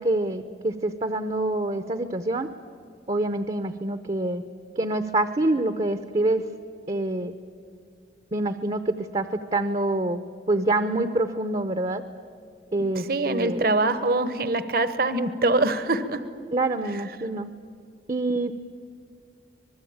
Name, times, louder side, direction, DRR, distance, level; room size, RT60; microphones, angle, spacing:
voice 1, 0.0-2.5 3.1-4.4 4.8-6.4 6.9-7.3 8.3-12.0 12.7-13.7 16.5-17.5 18.1-18.5, right 2 dB, 35° right, 9 dB, 0.8 m, -26 dB
voice 2, 13.1-16.2, right 2 dB, 55° right, 12 dB, 1.1 m, -23 dB
25.5 x 21.0 x 8.7 m, 2.2 s
head